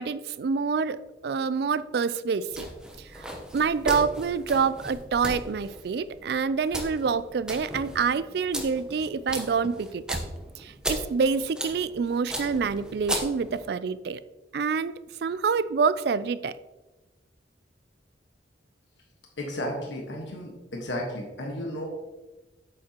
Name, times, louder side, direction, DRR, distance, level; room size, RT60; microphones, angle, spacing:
voice 1, 0.0-2.7 3.0-3.3 3.5-10.2 10.6-14.2 14.5-14.9 15.2-16.6, right 5 dB, 60° right, 15 dB, 0.3 m, -27 dB
sound 1, 2.5-13.7, right 1 dB, 5° right, 0.9 m, -36 dB
voice 2, 19.4-21.9, left 1 dB, 85° left, 0 dB, 1.4 m, -33 dB
8.8 x 7.3 x 2.9 m, 1.1 s
head